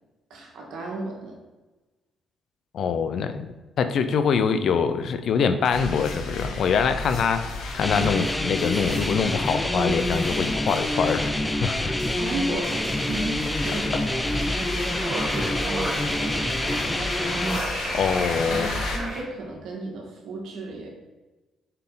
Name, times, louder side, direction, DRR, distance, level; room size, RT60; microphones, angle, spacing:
voice 1, 0.3-1.4 12.0-14.3 14.6-17.6 18.1-18.2 18.5-20.9, right 2 dB, 80° right, 0 dB, 1.6 m, -35 dB
voice 2, 2.7-3.5 3.8-11.9 17.9-18.7, left 6 dB, 65° left, 9 dB, 0.5 m, -24 dB
sound 1, 5.7-19.0, left 2 dB, 80° left, 1.3 m, -33 dB
sound 2, 7.8-17.6, left 1 dB, 10° left, 0.4 m, -27 dB
sound 3, 12.2-19.2, right 1 dB, 30° right, 1.8 m, -34 dB
7.0 x 4.6 x 3.8 m, 1.2 s
cardioid pair, 90°, 0 cm